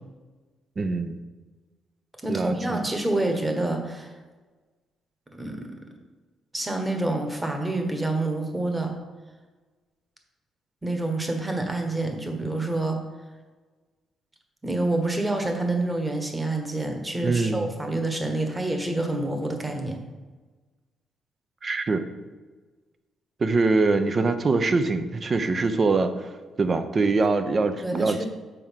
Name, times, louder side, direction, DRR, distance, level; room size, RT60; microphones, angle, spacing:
voice 1, 0.8-1.2 2.3-2.9 17.2-17.7 21.6-22.0 23.4-28.3, right 3 dB, 35° right, 9 dB, 0.7 m, -24 dB
voice 2, 2.2-4.1 5.3-5.7 6.5-8.9 10.8-13.0 14.6-20.0 27.8-28.3, right 2 dB, 15° right, 4 dB, 1.4 m, -27 dB
6.9 x 4.7 x 5.7 m, 1.3 s
cardioid pair, 90°, 0 cm